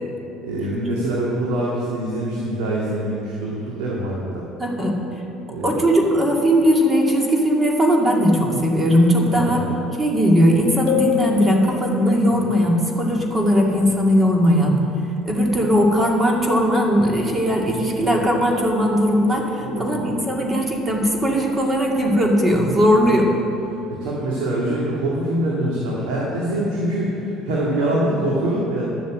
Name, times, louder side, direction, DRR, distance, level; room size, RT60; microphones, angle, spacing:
voice 1, 0.4-4.4 5.5-6.0 9.3-9.6 12.3-12.6 19.6-20.2 23.0-23.2 23.9-28.9, right 1 dB, 85° right, -5 dB, 2.0 m, -24 dB
voice 2, 4.6-4.9 5.6-9.6 10.0-14.7 15.3-23.3, equal, 25° right, 0 dB, 2.3 m, -18 dB
sound 1, 10.9-12.4, left 15 dB, 70° left, 0.9 m, -26 dB
11.5 x 7.3 x 7.5 m, 2.9 s
supercardioid pair, 80°, 0 cm